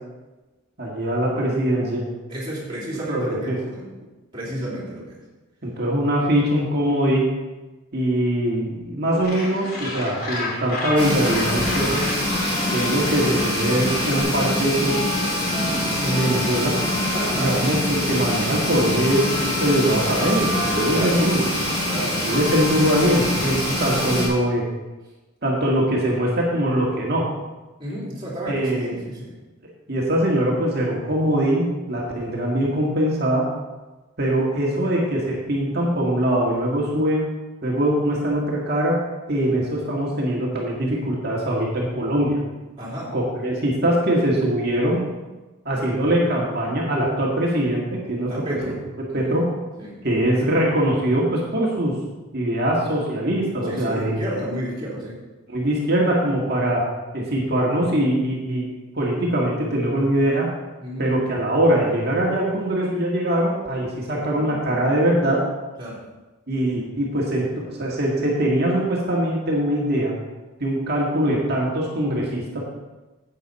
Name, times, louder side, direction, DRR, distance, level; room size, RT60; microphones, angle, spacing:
voice 1, 0.8-2.0 3.1-3.5 5.6-7.3 7.9-12.0 12.7-15.0 15.6-16.7 17.4-21.4 22.3-24.6 25.4-27.2 28.5-29.0 29.9-33.4 34.2-37.3 37.6-39.0 39.3-42.4 43.1-45.0 45.7-48.6 49.1-49.5 50.0-51.9 52.3-54.2 55.5-56.8 57.1-58.6 59.0-60.5 61.0-65.4 66.5-70.1 70.6-72.6, right 1 dB, 50° right, -3 dB, 1.9 m, -22 dB
voice 2, 2.3-3.9 4.3-5.2 17.1-17.6 20.7-21.2 21.9-22.2 27.8-29.4 42.8-43.2 48.3-48.8 49.1-49.3 49.8-50.0 53.6-55.2 60.8-61.1 65.8-66.0, right 1 dB, 20° right, -7 dB, 3.4 m, -31 dB
Gull seagull, 9.2-14.2, left 2 dB, 45° left, 2.5 m, -32 dB
sound 1, 11.0-24.3, left 1 dB, 25° left, 3.6 m, -24 dB
10.0 x 8.5 x 4.3 m, 1.2 s
head